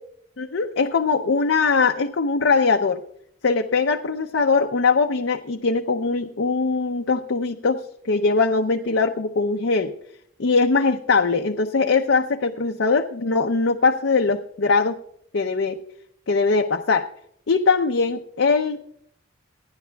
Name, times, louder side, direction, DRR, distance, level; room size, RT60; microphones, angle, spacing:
voice 1, 0.4-3.0 3.4-7.8 8.1-9.9 10.4-14.9 15.3-15.8 16.3-17.1 17.5-18.8, left 4 dB, 60° left, 4 dB, 0.6 m, -21 dB
28.5 x 10.5 x 2.3 m, 0.70 s
head